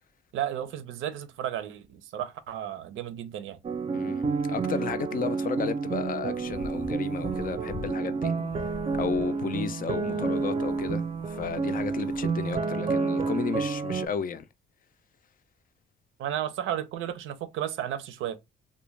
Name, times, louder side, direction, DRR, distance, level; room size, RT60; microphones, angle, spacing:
voice 1, 0.3-3.6 16.2-18.4, right 11 dB, 80° right, 0.5 m, -33 dB
sound 1, 3.6-14.1, right 4 dB, 30° right, 0.4 m, -29 dB
voice 2, 3.9-8.3 9.0-14.5, left 7 dB, 45° left, 0.4 m, -33 dB
sound 2, 6.3-7.9 8.3-12.6, left 3 dB, 75° left, 0.7 m, -43 dB
2.3 x 2.1 x 3.1 m
cardioid pair, 90°, 20 cm